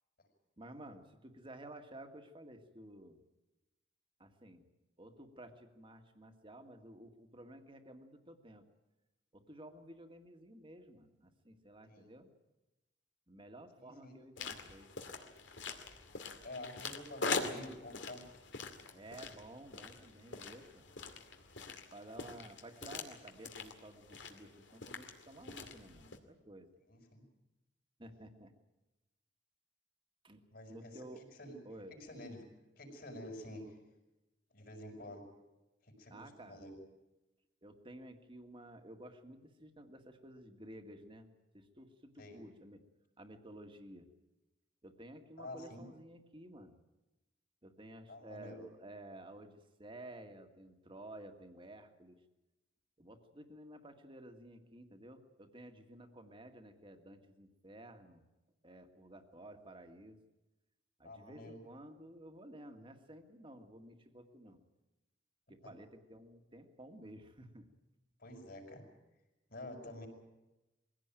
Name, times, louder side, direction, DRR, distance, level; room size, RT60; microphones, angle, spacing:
voice 1, 0.6-3.2 4.2-4.6 5.0-8.6 9.3-12.3 13.3-14.9 18.9-20.9 21.9-26.7 28.0-28.5 30.2-30.4 30.7-31.2 31.7-32.0 36.1-36.7 37.6-41.3 41.5-42.8 43.2-44.1 44.8-46.8 47.6-52.2 53.0-58.2 58.6-60.2 61.0-64.6 65.5-67.7, right 1 dB, 30° right, 6 dB, 2.0 m, -53 dB
voice 2, 13.8-14.2 16.4-18.4 26.9-27.2 30.5-31.6 31.9-32.5 32.8-33.8 34.5-35.3 35.8-36.7 42.2-42.4 45.4-45.8 48.1-48.6 61.0-61.6 65.6-65.7 68.2-68.9 69.5-70.1, left 1 dB, 55° left, 2 dB, 5.6 m, -49 dB
sound 1, 14.4-26.2, left 4 dB, 80° left, 2.4 m, -44 dB
22.0 x 16.5 x 9.1 m, 1.0 s
head